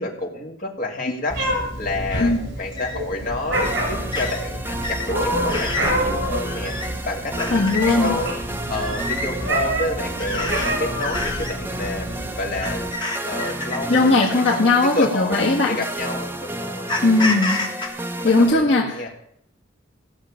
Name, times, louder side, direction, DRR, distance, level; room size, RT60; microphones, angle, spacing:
voice 1, 0.0-8.3 8.7-12.9 13.2-17.5 18.2-19.2, left 2 dB, 45° left, -1 dB, 3.0 m, -30 dB
Meow, 1.3-12.9, right 1 dB, 60° right, 6.4 m, -27 dB
sound 1, 2.1-2.3 2.8-3.0 3.6-3.8 4.1-4.4 4.8-5.1 5.5-5.9 6.5-6.9 7.3-7.9 8.7-9.3 10.2-10.7 11.0-11.5 12.6-14.7 15.6-15.7 16.9-17.9, left 2 dB, 25° left, 2.9 m, -28 dB
sound 2, 3.5-18.5, right 1 dB, 10° right, 0.8 m, -31 dB
voice 2, 7.5-8.2 13.9-15.8 17.0-17.7 18.2-19.1, left 2 dB, 65° left, -2 dB, 1.6 m, -18 dB
16.0 x 6.5 x 8.8 m, 0.71 s
head